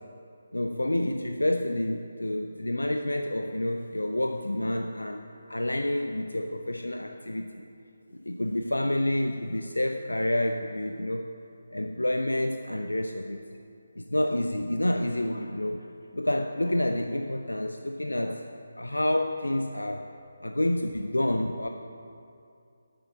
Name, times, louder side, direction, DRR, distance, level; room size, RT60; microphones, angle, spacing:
voice 1, 0.5-7.6 8.1-11.3 11.7-13.4 14.0-15.9 16.1-18.4 18.8-20.1 20.4-21.7, left 1 dB, 85° left, 5 dB, 0.5 m, -29 dB
7.0 x 6.7 x 7.4 m, 2.5 s
figure-of-eight pair, 150°, 0 cm